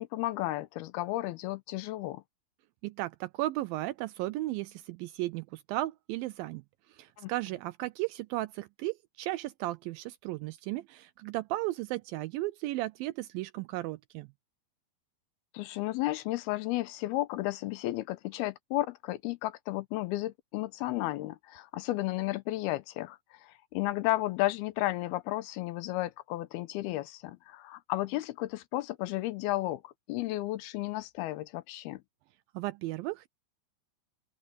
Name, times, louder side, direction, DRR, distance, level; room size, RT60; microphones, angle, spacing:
voice 1, 0.0-2.2 7.2-7.3 15.5-32.0, left 17 dB, 80° left, 2.7 m, -33 dB
voice 2, 2.8-6.6 6.9-14.3 32.5-33.3, right 17 dB, 85° right, 2.1 m, -35 dB
open air
omnidirectional pair, 4.5 m